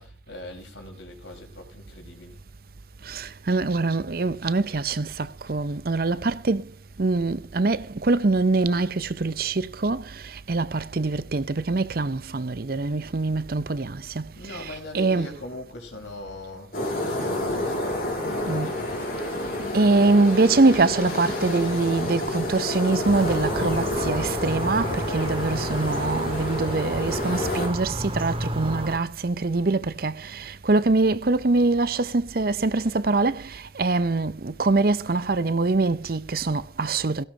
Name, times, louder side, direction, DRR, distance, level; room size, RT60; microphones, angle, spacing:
voice 1, 0.0-2.4 14.3-19.0, left 2 dB, 85° left, 4.8 m, -41 dB
voice 2, 3.1-6.7 7.0-10.0 10.3-15.4 18.5-18.7 19.7-37.2, right 3 dB, 55° right, 0.7 m, -24 dB
sound 1, 16.7-27.7, left 1 dB, 50° left, 6.3 m, -29 dB
sound 2, 23.0-29.0, right 1 dB, 30° right, 1.9 m, -32 dB
17.0 x 17.0 x 2.9 m
head